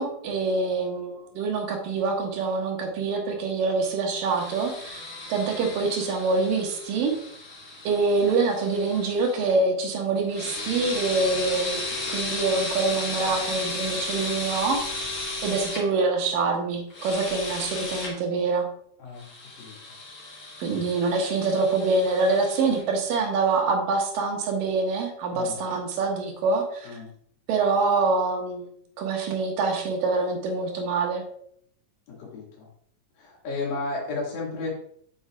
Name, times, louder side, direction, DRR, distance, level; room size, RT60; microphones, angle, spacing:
voice 1, 0.0-5.0 5.3-7.2 7.8-14.8 15.4-18.7 20.6-26.9 27.5-28.7 29.0-31.2, right 3 dB, 80° right, 2 dB, 2.8 m, -25 dB
sound 1, 4.2-9.5 10.3-15.8 16.9-18.1 19.2-22.8, left 2 dB, 35° left, 2.5 m, -34 dB
voice 2, 19.0-19.3 19.6-19.7 25.3-25.6 26.8-27.1 32.1-32.7 33.2-34.7, left 3 dB, 85° left, -3 dB, 3.9 m, -33 dB
8.4 x 7.1 x 2.4 m, 0.66 s
omnidirectional pair, 4.0 m